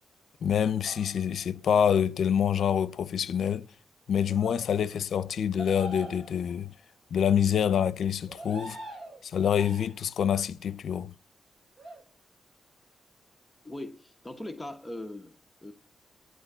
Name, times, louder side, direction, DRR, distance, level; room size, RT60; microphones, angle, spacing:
voice 1, 0.4-3.7 4.1-6.7 7.1-8.8 9.2-11.1, left 8 dB, 75° left, 0.6 m, -26 dB
sound 1, 0.8-1.4 4.3-4.6 5.6-6.7 8.3-9.2 9.6-10.1 11.8-12.0, equal, 50° right, 5.2 m, -43 dB
voice 2, 13.6-15.3 15.6-15.7, left 1 dB, 10° left, 1.3 m, -40 dB
17.0 x 10.5 x 6.1 m
wide cardioid pair, 135°, 0 cm